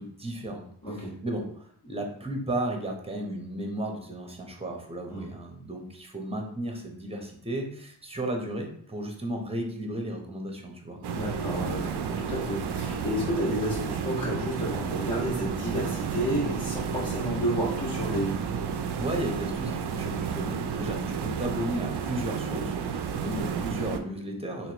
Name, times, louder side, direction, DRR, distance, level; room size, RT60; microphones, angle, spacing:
voice 1, 0.0-0.7 0.9-11.0 19.0-24.7, right 1 dB, 10° right, 2 dB, 0.9 m, -34 dB
voice 2, 0.8-1.1 5.1-5.3 11.1-18.3, equal, 10° left, -8 dB, 1.5 m, -31 dB
sound 1, 11.0-24.0, right 6 dB, 55° right, 0.5 m, -32 dB
3.0 x 2.9 x 2.9 m, 0.62 s
cardioid pair, 40°, 49 cm